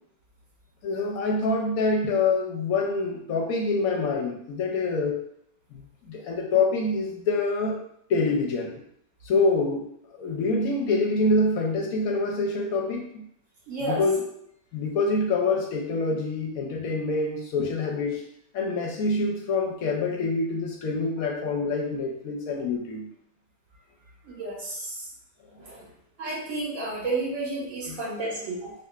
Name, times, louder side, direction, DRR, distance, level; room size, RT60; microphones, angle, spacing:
voice 1, 0.8-5.3 5.7-5.8 6.1-7.8 8.1-8.8 9.2-9.9 10.2-13.2 13.8-14.3 14.7-18.2 18.5-23.1 27.8-28.0 28.4-28.5, left 3 dB, 65° left, 0 dB, 0.9 m, -26 dB
voice 2, 13.7-14.0 24.2-25.0 25.6-25.8 26.2-28.7, right 2 dB, 55° right, -5 dB, 1.5 m, -31 dB
4.7 x 2.4 x 2.4 m, 0.71 s
omnidirectional pair, 1.8 m